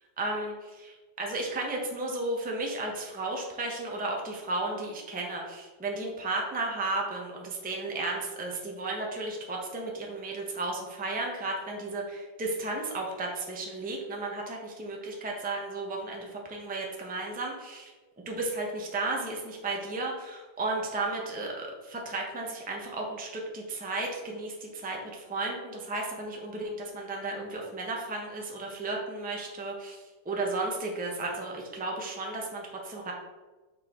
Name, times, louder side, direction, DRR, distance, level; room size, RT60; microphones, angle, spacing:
voice 1, 0.2-0.5 1.2-17.9 18.3-33.1, right 2 dB, 10° right, 0 dB, 0.5 m, -34 dB
6.8 x 4.3 x 3.7 m, 1.3 s
omnidirectional pair, 1.9 m